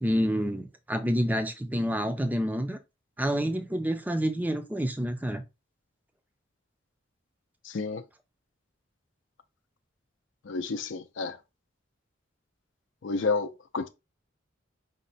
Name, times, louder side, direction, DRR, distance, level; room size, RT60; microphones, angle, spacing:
voice 1, 0.0-2.8 3.2-5.4, equal, 10° right, 0.5 m, -28 dB
voice 2, 7.6-8.0 10.5-11.4 13.0-13.9, left 4 dB, 65° left, 0.5 m, -30 dB
5.2 x 2.2 x 4.0 m
head